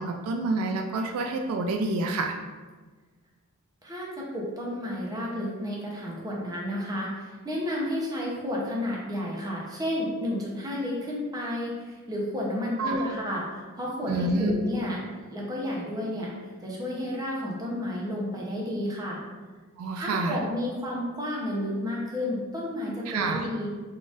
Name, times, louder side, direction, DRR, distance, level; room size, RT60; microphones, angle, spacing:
voice 1, 0.0-2.3 12.8-13.1 14.1-14.6 19.8-20.4 23.1-23.5, right 2 dB, 70° right, 3 dB, 0.3 m, -28 dB
voice 2, 3.8-16.3 16.6-19.2 19.9-23.7, left 1 dB, 15° right, -3 dB, 0.7 m, -31 dB
3.8 x 3.6 x 2.5 m, 1.4 s
head